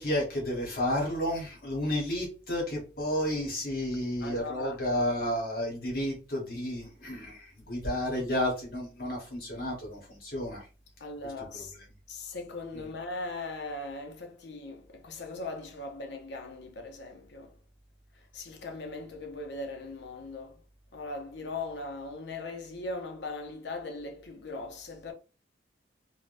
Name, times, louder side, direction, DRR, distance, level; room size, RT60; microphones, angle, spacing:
voice 1, 0.0-10.7 12.7-12.9, left 1 dB, 50° left, 1.1 m, -31 dB
voice 2, 4.2-4.8 11.0-11.7 12.1-17.6 18.1-20.6 20.9-25.1, left 2 dB, 75° left, 0.6 m, -39 dB
3.3 x 2.1 x 2.5 m
head